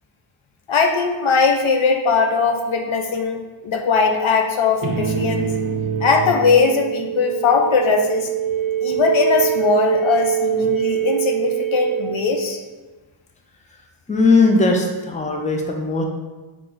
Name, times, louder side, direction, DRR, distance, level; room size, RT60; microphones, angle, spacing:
voice 1, 0.7-5.5 6.0-8.3 8.8-12.6, left 4 dB, 70° left, 3 dB, 0.6 m, -19 dB
sound 1, 4.8-12.7, right 9 dB, 45° right, 0.5 m, -24 dB
voice 2, 13.7-16.0, left 3 dB, 15° left, 1 dB, 0.5 m, -19 dB
4.4 x 2.5 x 3.8 m, 1.2 s
wide cardioid pair, 70°, 49 cm